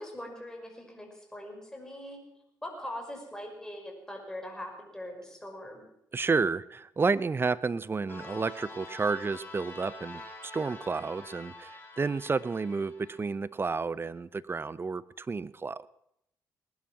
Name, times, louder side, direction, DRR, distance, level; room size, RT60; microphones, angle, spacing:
voice 1, 0.0-2.2 2.6-5.8, left 1 dB, 10° left, 2 dB, 5.8 m, -41 dB
voice 2, 6.1-15.9, right 4 dB, 30° right, 18 dB, 0.7 m, -31 dB
sound 1, 8.1-13.3, left 2 dB, 25° left, 3.8 m, -46 dB
19.0 x 11.5 x 6.1 m, 0.78 s
supercardioid pair, 60°, 8 cm